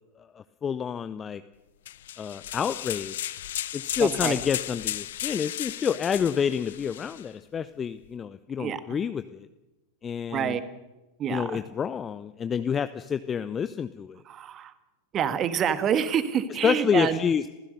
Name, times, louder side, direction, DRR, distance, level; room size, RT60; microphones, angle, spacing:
voice 1, 0.6-1.4 2.2-3.4 3.7-9.5 10.0-10.6 11.3-14.2 16.6-17.4, left 7 dB, 20° left, 12 dB, 0.7 m, -28 dB
sound 1, 1.9-7.2, left 12 dB, 60° left, 0.7 m, -34 dB
voice 2, 4.0-4.4 8.6-9.0 10.3-10.6 11.2-11.6 14.2-14.7 15.1-17.2, right 8 dB, 30° right, 13 dB, 1.7 m, -27 dB
28.5 x 15.5 x 6.7 m, 1.1 s
figure-of-eight pair, 90°, 0 cm